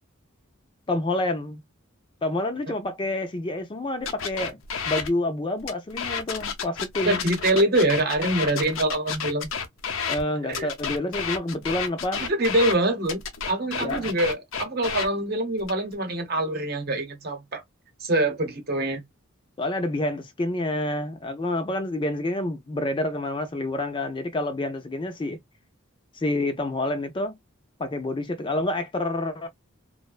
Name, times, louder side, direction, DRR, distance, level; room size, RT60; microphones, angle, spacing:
voice 1, 0.9-1.6 2.2-4.6 4.9-7.2 10.1-12.2 13.8-14.1 19.6-25.4 26.1-27.3 27.8-29.5, left 1 dB, 25° left, 0.4 m, -28 dB
sound 1, 4.1-5.1 5.6-10.2 10.5-12.7 13.1-15.1 15.6-15.9, left 6 dB, 75° left, 0.6 m, -30 dB
voice 2, 7.1-9.5 10.5-10.7 12.2-13.2 13.5-17.6 18.0-19.0, right 1 dB, 50° right, 0.8 m, -24 dB
2.5 x 2.1 x 2.2 m
head